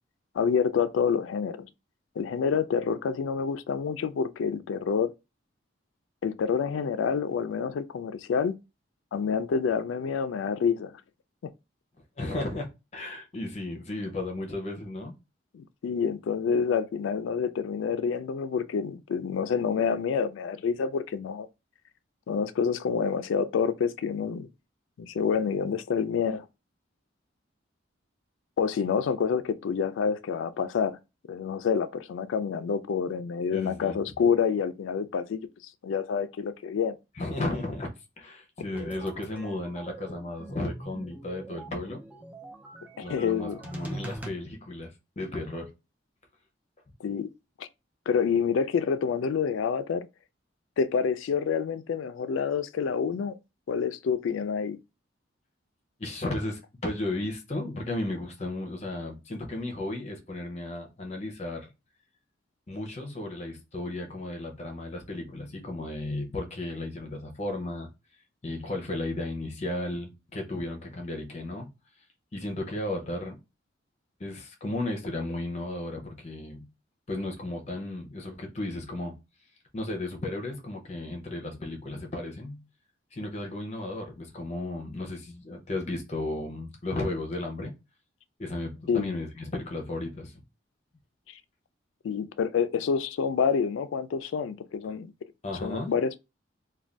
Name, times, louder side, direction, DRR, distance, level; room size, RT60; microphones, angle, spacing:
voice 1, 0.3-1.7 2.2-5.1 6.2-8.6 9.1-11.0 15.5-21.5 22.3-24.5 25.0-26.4 28.6-31.0 31.3-35.4 35.8-37.0 43.0-43.6 47.0-47.3 47.6-47.7 48.1-50.1 50.8-53.4 53.7-54.8 88.9-89.2 92.0-95.1 95.6-96.2, left 6 dB, 85° left, 0.3 m, -28 dB
voice 2, 12.2-15.2 33.5-34.1 37.2-37.9 38.2-42.0 43.0-45.7 56.0-61.7 62.7-67.9 68.4-71.7 72.3-73.4 74.2-76.7 77.1-79.2 79.7-82.7 83.1-87.8 88.4-90.4 95.4-95.9, left 2 dB, 35° left, 0.6 m, -34 dB
sound 1, 38.7-44.3, right 2 dB, 10° right, 0.3 m, -42 dB
2.5 x 2.2 x 3.2 m
head